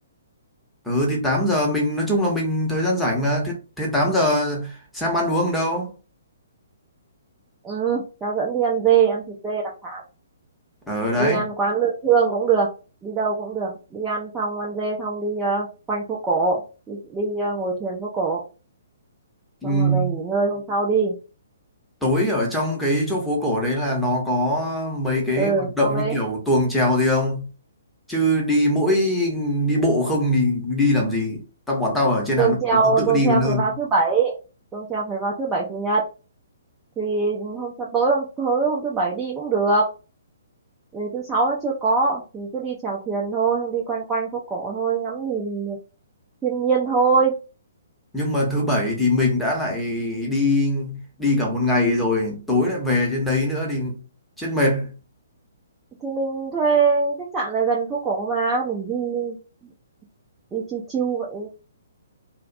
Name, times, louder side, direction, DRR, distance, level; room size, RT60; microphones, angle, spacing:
voice 1, 0.8-5.9 10.9-11.5 19.6-20.2 22.0-27.5 28.1-33.8 48.1-54.0 54.4-54.9, left 1 dB, 5° left, 0.8 m, -22 dB
voice 2, 7.6-10.0 11.2-12.7 13.0-16.6 16.9-18.4 19.6-21.1 25.4-26.2 32.4-34.3 34.7-36.0 37.0-39.9 40.9-45.8 46.4-47.4 56.0-59.4 60.5-61.5, right 5 dB, 10° right, 0.4 m, -23 dB
2.4 x 2.0 x 2.4 m
figure-of-eight pair, 125°, 0 cm